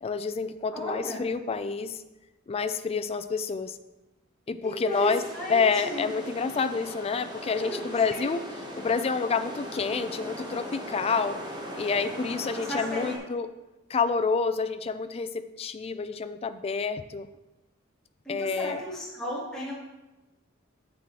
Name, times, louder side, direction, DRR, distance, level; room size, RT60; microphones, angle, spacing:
voice 1, 0.0-2.0 2.5-3.8 4.5-5.2 5.5-8.4 8.8-11.4 11.7-13.5 13.9-17.3 18.3-18.8, left 5 dB, 30° left, 10 dB, 0.3 m, -28 dB
voice 2, 0.7-1.2 4.6-6.1 7.6-8.3 12.6-13.1 18.2-19.7, equal, 5° left, -8 dB, 1.4 m, -34 dB
sound 1, 4.9-13.2, equal, 20° right, 1.2 m, -39 dB
8.5 x 7.6 x 3.1 m, 1.1 s
head